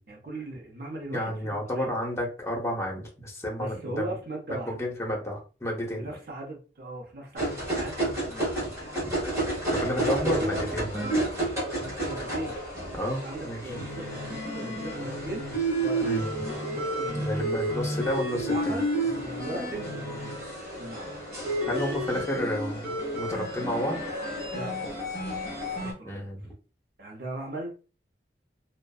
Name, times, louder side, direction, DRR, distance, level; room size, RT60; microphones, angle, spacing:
voice 1, 0.0-2.0 3.6-5.2 5.9-8.7 9.9-10.7 11.8-12.6 13.0-15.5 15.8-17.6 18.5-20.4 20.8-21.1 21.6-21.8 24.5-25.0 25.7-26.2 27.0-27.7, right 1 dB, 60° right, 0.8 m, -38 dB
voice 2, 1.1-4.1 4.7-6.1 9.7-11.1 12.9-13.6 16.0-16.3 17.1-18.8 21.7-24.0 26.0-26.5, left 1 dB, 15° left, 0.7 m, -31 dB
sound 1, 7.4-25.9, right 1 dB, 15° right, 1.1 m, -31 dB
2.5 x 2.2 x 2.3 m
head